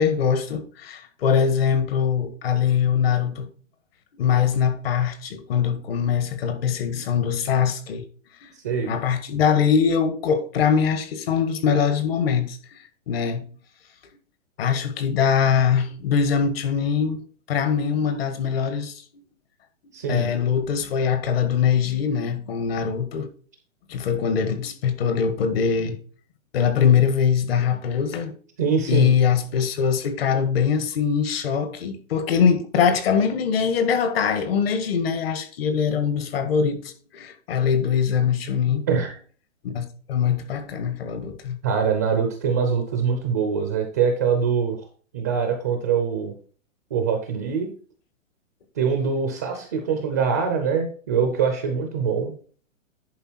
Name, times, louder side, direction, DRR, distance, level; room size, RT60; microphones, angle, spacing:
voice 1, 0.0-3.5 4.2-8.0 8.4-8.5 8.9-12.8 13.1-13.5 14.6-17.2 17.5-19.0 20.1-23.3 23.9-26.0 26.5-28.3 28.9-38.9 39.6-41.6, left 7 dB, 50° left, 1.7 m, -22 dB
voice 2, 8.6-9.0 19.9-20.3 28.6-29.1 38.9-39.1 41.6-44.8 45.1-46.3 46.9-47.7 48.8-52.3, right 6 dB, 15° right, 0.4 m, -23 dB
10.5 x 4.5 x 4.4 m
hypercardioid pair, 160°, 39 cm